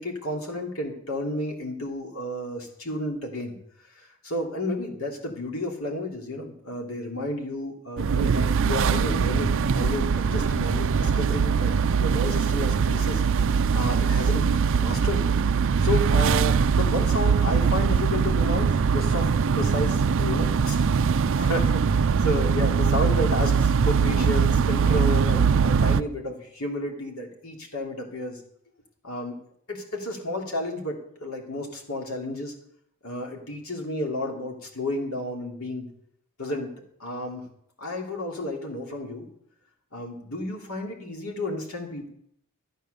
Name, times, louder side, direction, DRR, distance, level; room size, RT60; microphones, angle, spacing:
voice 1, 0.0-3.5 3.9-11.7 12.0-13.2 13.7-14.4 14.7-15.2 15.8-20.8 21.3-28.4 29.0-29.4 29.7-32.5 33.0-35.9 36.4-37.5 37.8-39.3 39.9-42.1, left 1 dB, 75° left, 1 dB, 3.0 m, -31 dB
sound 1, 8.0-26.0, right 6 dB, 60° right, 0.4 m, -22 dB
14.0 x 9.1 x 6.8 m, 0.69 s
head